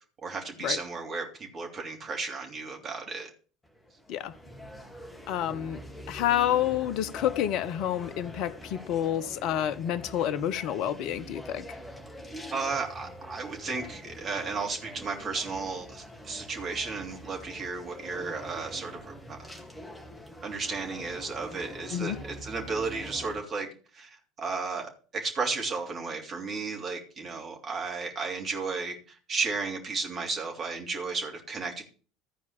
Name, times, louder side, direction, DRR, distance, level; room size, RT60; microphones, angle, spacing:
voice 1, 0.2-3.3 12.5-19.6 20.4-23.7 23.9-31.8, right 4 dB, 35° right, 3.3 m, -34 dB
sound 1, 3.6-23.4, equal, 10° left, 2.2 m, -44 dB
voice 2, 5.3-5.8 6.1-11.6 21.9-22.2, left 11 dB, 50° left, 0.7 m, -29 dB
14.0 x 4.7 x 7.1 m
figure-of-eight pair, 65°, 0 cm